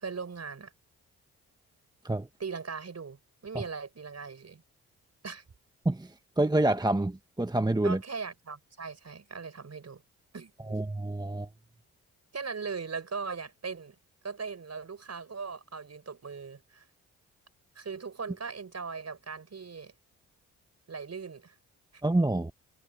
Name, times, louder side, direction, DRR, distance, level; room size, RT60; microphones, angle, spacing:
voice 1, 0.0-0.7 2.4-4.6 5.2-5.4 7.8-10.0 10.3-10.5 12.3-14.0 14.2-16.9 17.7-19.9 20.9-21.5 21.9-22.0, right 5 dB, 45° right, 6.2 m, -39 dB
voice 2, 5.8-8.0 10.7-11.5 22.0-22.5, right 2 dB, 10° right, 1.2 m, -27 dB
hypercardioid pair, 45°, 38 cm